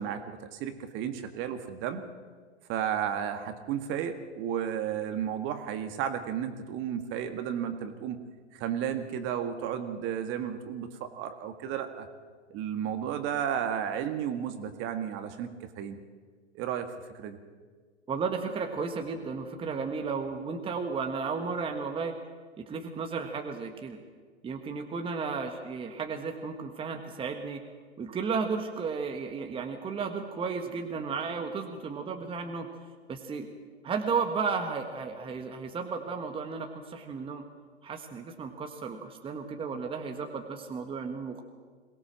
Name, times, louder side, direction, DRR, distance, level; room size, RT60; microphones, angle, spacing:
voice 1, 0.0-2.0 2.7-8.2 8.5-12.1 12.5-16.0 16.5-17.4, right 9 dB, 35° right, 8 dB, 1.8 m, -33 dB
voice 2, 18.1-22.1 22.6-24.0 24.4-27.6 28.0-32.7 33.1-33.5 33.8-37.4 37.8-41.4, right 5 dB, 15° right, 4 dB, 1.5 m, -33 dB
22.5 x 18.0 x 7.5 m, 1.6 s
hypercardioid pair, 115°, 34 cm